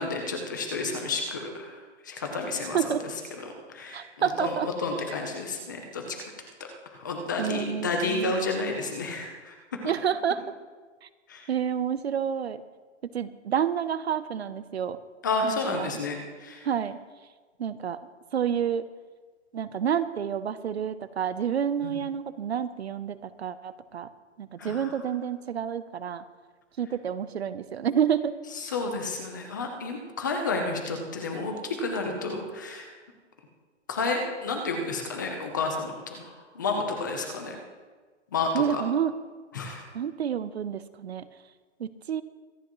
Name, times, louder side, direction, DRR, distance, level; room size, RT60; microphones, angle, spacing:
voice 1, 0.0-6.2 6.6-9.6 11.3-11.5 15.2-16.7 21.8-21.9 24.6-24.9 28.5-32.9 33.9-37.6 38.3-38.8 39.5-39.8, left 3 dB, 15° left, 3 dB, 0.7 m, -31 dB
voice 2, 3.9-4.7 7.4-8.3 9.8-10.4 11.0-11.1 11.5-12.6 13.1-15.0 15.4-15.9 16.6-17.0 17.6-18.0 18.3-18.8 19.5-24.1 24.4-26.2 26.8-28.3 38.5-39.1 39.9-41.2 41.8-42.2, right 8 dB, 55° right, 14 dB, 0.7 m, -29 dB
24.5 x 9.7 x 3.1 m, 1.4 s
hypercardioid pair, 180°, 37 cm